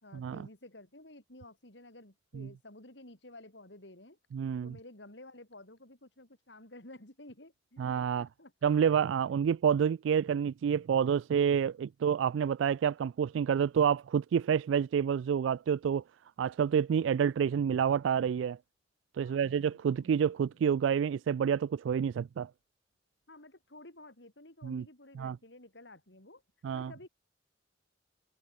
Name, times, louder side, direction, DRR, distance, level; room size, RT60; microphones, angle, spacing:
voice 1, 0.0-4.2 4.6-8.5 19.2-20.2 23.3-26.4 26.7-27.1, left 2 dB, 70° left, 5.1 m, -53 dB
voice 2, 4.3-4.8 7.8-8.3 8.6-16.0 16.4-18.6 19.2-22.5 24.6-24.8 25.2-25.4 26.6-26.9, right 7 dB, 90° right, 0.3 m, -28 dB
head